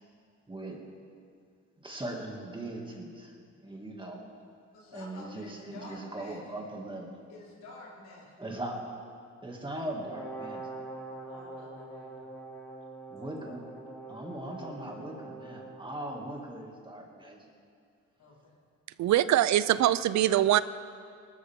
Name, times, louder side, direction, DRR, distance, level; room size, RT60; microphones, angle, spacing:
voice 1, 0.5-0.8 1.8-3.3 3.6-4.2 4.9-7.2 8.4-8.8 9.4-10.6 13.1-13.6 14.1-17.5, right 1 dB, 15° right, 0 dB, 2.5 m, -39 dB
voice 2, 4.7-6.6 7.3-8.3 11.3-12.4 18.2-18.6, left 2 dB, 85° left, -6 dB, 4.6 m, -50 dB
Brass instrument, 10.0-15.8, right 2 dB, 5° left, 2.8 m, -44 dB
voice 3, 19.0-20.6, right 12 dB, 65° right, 16 dB, 0.5 m, -23 dB
20.0 x 13.0 x 3.8 m, 2.3 s
cardioid pair, 90°, 30 cm